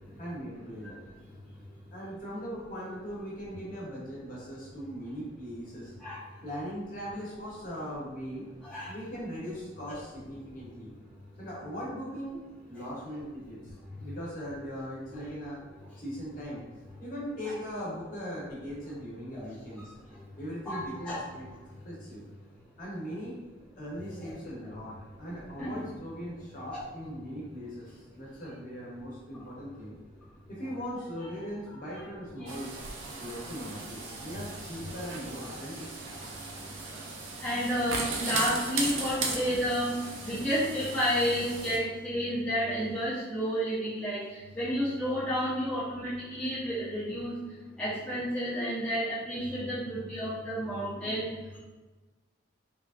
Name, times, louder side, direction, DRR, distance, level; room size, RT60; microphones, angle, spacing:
voice 1, 0.2-1.0 1.9-5.9 6.4-8.4 8.9-10.9 11.4-12.4 12.7-13.7 14.0-15.6 16.0-16.6 17.0-19.9 20.4-21.5 21.8-22.2 22.8-23.4 23.8-30.0 30.5-32.8 33.2-35.9, equal, 45° left, -6 dB, 0.9 m, -39 dB
voice 2, 8.6-8.9 9.9-10.0 17.4-17.5 19.3-19.5 20.7-21.2 24.2-24.3 25.3-25.8 26.7-26.8 29.4-29.5 31.7-31.8 32.4-32.5 34.1-34.4 36.5-36.7 37.4-47.4 47.8-51.3, equal, 5° left, -11 dB, 0.5 m, -31 dB
sound 1, 32.5-41.8, right 3 dB, 90° right, 0.5 m, -37 dB
3.0 x 2.4 x 2.4 m, 1.2 s
head